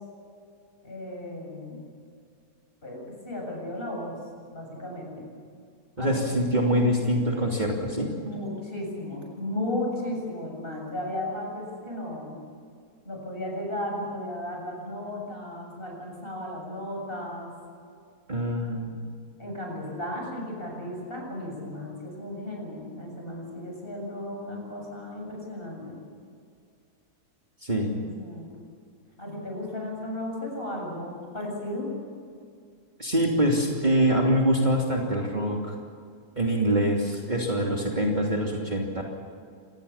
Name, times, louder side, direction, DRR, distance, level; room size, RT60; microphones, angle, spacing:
voice 1, 0.8-1.9 2.8-4.2 4.5-5.3 6.0-6.3 8.2-12.4 13.0-17.5 19.4-26.0 27.8-27.9 28.2-28.5 29.2-31.9, left 1 dB, 35° left, 0 dB, 7.7 m, -35 dB
voice 2, 6.0-8.1 18.3-19.0 27.6-27.9 33.0-35.7 36.4-39.0, equal, 30° right, -1 dB, 3.0 m, -24 dB
27.0 x 20.5 x 7.2 m, 2.3 s
omnidirectional pair, 1.6 m